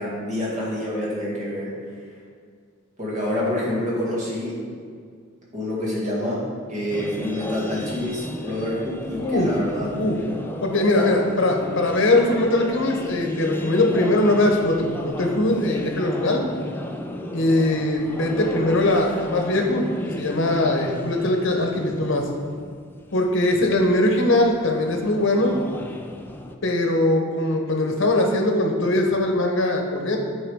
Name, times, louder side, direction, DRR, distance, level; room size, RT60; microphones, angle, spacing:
voice 1, 0.0-1.7 3.0-4.6 5.5-6.4 6.7-9.9 11.0-11.1, left 1 dB, 35° right, -6 dB, 1.9 m, -27 dB
sound 1, 6.9-26.6, left 1 dB, 10° left, 0.3 m, -35 dB
voice 2, 9.2-9.5 9.9-10.2 10.6-16.4 17.3-19.9 20.2-22.3 23.1-25.6 26.6-30.2, left 1 dB, 60° left, 2 dB, 0.9 m, -21 dB
8.7 x 4.7 x 3.6 m, 2.1 s
head